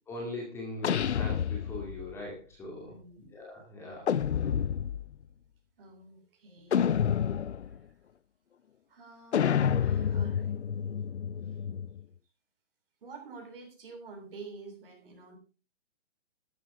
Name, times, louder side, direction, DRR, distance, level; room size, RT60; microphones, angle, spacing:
voice 1, 0.1-4.1, left 2 dB, 5° left, -1 dB, 2.4 m, -41 dB
sound 1, 0.8-2.1 4.1-5.1 6.7-7.8 9.3-12.0, left 8 dB, 65° left, 0.8 m, -29 dB
voice 2, 2.9-3.2 5.8-7.0 7.7-7.8 8.9-10.5 11.4-11.6 13.0-15.4, right 4 dB, 50° right, 2 dB, 7.3 m, -48 dB
13.0 x 13.0 x 3.7 m, 0.33 s
hypercardioid pair, 165°, 35 cm